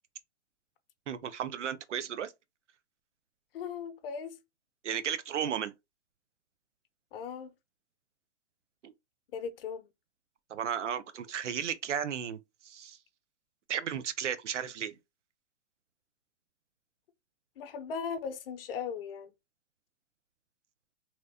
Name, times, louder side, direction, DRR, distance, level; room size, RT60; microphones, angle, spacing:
voice 1, 1.1-2.3 4.8-5.7 8.8-8.9 10.5-13.0 13.7-15.0, right 8 dB, 75° right, 0.7 m, -34 dB
voice 2, 3.5-4.4 7.1-7.5 9.3-9.9 17.6-19.3, left 6 dB, 50° left, 0.7 m, -38 dB
2.9 x 2.8 x 2.8 m
hypercardioid pair, 125°, 36 cm